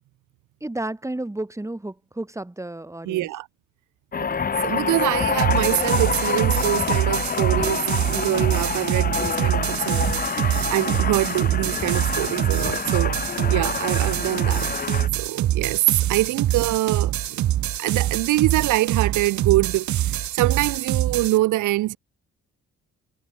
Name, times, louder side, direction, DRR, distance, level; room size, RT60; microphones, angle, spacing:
voice 1, 0.6-3.3, right 1 dB, 10° right, 3.3 m, -32 dB
voice 2, 3.0-3.5 4.2-14.7 15.2-17.4 17.8-22.0, right 17 dB, 85° right, 0.9 m, -25 dB
sound 1, 4.1-15.1, left 6 dB, 30° left, 0.9 m, -27 dB
sound 2, 5.4-21.4, right 12 dB, 70° right, 1.5 m, -25 dB
cardioid pair, 90°, 30 cm